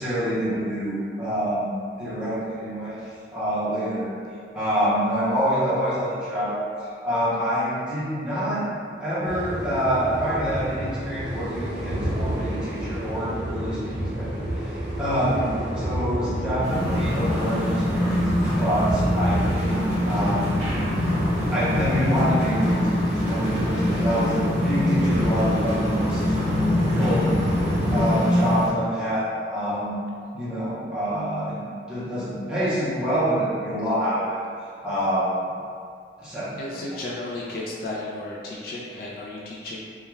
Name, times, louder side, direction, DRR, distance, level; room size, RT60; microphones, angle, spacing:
voice 1, 0.0-4.1 4.5-6.6 7.0-8.6 9.0-18.3 18.6-20.6 21.5-24.3 24.6-26.4 26.7-27.3 27.9-30.0 30.3-34.4 34.8-35.5 36.2-37.0, equal, 5° right, -12 dB, 0.7 m, -26 dB
sound 1, 9.2-28.1, right 1 dB, 70° right, 0.6 m, -30 dB
sound 2, 16.6-28.7, left 1 dB, 35° right, 0.9 m, -24 dB
voice 2, 36.6-39.8, left 2 dB, 50° left, -5 dB, 0.3 m, -34 dB
2.3 x 2.2 x 3.0 m, 2.3 s
head